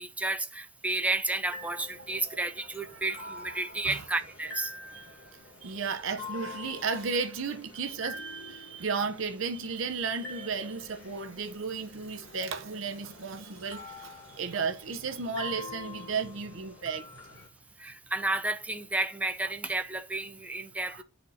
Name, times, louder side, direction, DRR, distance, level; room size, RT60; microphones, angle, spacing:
voice 1, 0.0-4.7 17.8-21.0, right 2 dB, 5° right, 0.4 m, -32 dB
sound 1, 1.5-17.5, left 2 dB, 70° left, 1.3 m, -46 dB
voice 2, 5.6-17.0 20.8-21.0, right 5 dB, 65° right, 0.7 m, -34 dB
9.8 x 4.4 x 2.7 m
head